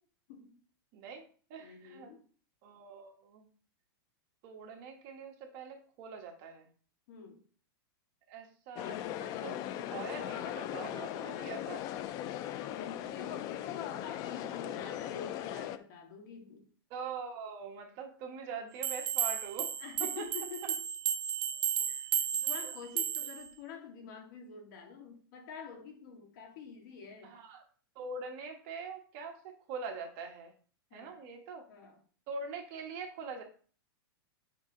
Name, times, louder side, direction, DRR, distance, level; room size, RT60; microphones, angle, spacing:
voice 1, 0.9-1.2 1.5-2.1 2.6-3.5 4.4-6.7 8.3-11.9 16.9-19.7 20.0-20.2 22.4-22.7 27.2-27.6 27.9-30.5 30.9-31.7 32.3-33.4, right 5 dB, 40° right, 3 dB, 1.3 m, -43 dB
voice 2, 1.6-2.2 7.1-7.4 12.6-16.7 19.8-20.9 21.9-27.4 30.9-31.2 31.7-32.0, left 6 dB, 55° left, 2 dB, 1.9 m, -47 dB
sound 1, 8.8-15.8, left 12 dB, 30° left, 0.4 m, -39 dB
sound 2, 18.8-23.5, right 9 dB, 80° right, 0.7 m, -33 dB
6.6 x 3.6 x 4.9 m, 0.42 s
supercardioid pair, 155°, 12 cm